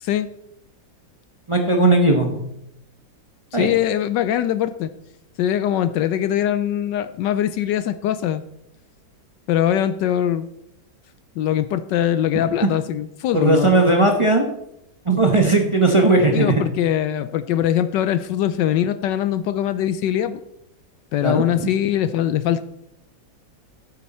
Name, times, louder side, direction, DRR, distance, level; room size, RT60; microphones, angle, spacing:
voice 1, 1.5-2.4 3.5-3.7 13.3-14.4 15.1-16.5 21.2-21.7, right 2 dB, 20° right, 2 dB, 0.9 m, -17 dB
voice 2, 3.5-4.9 5.4-8.4 9.5-10.5 11.4-13.7 16.3-20.4 21.1-22.6, left 11 dB, 75° left, 13 dB, 1.1 m, -22 dB
13.0 x 8.3 x 4.2 m, 0.81 s
omnidirectional pair, 2.1 m